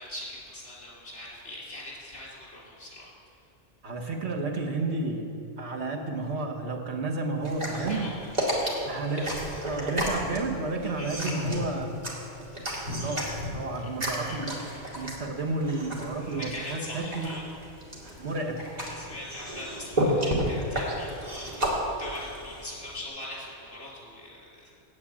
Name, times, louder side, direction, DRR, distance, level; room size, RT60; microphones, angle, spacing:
voice 1, 0.0-3.1 7.9-8.9 10.9-11.2 13.8-13.9 14.2-14.7 16.3-17.4 19.0-21.7 22.0-24.7, left 1 dB, 80° left, -5 dB, 3.9 m, -42 dB
voice 2, 3.8-5.3 5.6-8.1 8.8-9.3 9.6-11.9 12.4-12.5 13.0-17.3 18.2-18.7, right 3 dB, 70° right, 1 dB, 1.5 m, -31 dB
sound 1, 7.4-23.0, equal, 35° right, 2.3 m, -32 dB
8.9 x 8.5 x 8.5 m, 2.9 s
omnidirectional pair, 1.2 m